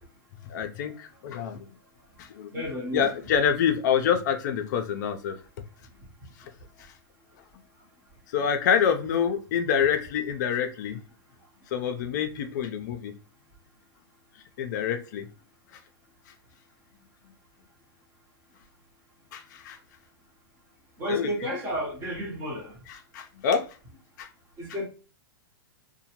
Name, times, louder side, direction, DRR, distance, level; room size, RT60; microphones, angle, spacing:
voice 1, 0.4-1.7 2.2-2.6 2.9-5.4 8.3-11.0 11.7-13.1 14.6-15.3 19.3-19.8 21.1-21.3 22.9-23.7 24.2-24.3, left 7 dB, 50° left, 0.4 m, -27 dB
voice 2, 2.5-3.1 21.0-22.8 24.6-24.9, equal, 20° right, 0.8 m, -32 dB
2.7 x 2.1 x 2.9 m
supercardioid pair, 160°, 13 cm